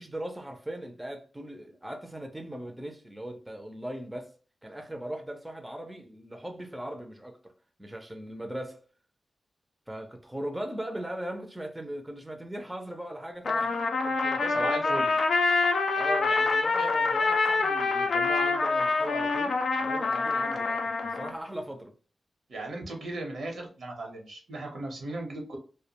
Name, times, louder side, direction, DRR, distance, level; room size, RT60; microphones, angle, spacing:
voice 1, 0.0-4.3 4.6-7.5 7.8-8.8 9.9-15.0 15.9-21.9, right 1 dB, 10° right, 0.4 m, -39 dB
Trumpet, 13.5-21.3, left 3 dB, 70° left, 0.3 m, -26 dB
voice 2, 14.5-15.1 16.3-16.4 16.8-16.9 22.5-25.6, right 2 dB, 80° right, 0.8 m, -36 dB
2.2 x 2.0 x 2.8 m
wide cardioid pair, 115°, 0 cm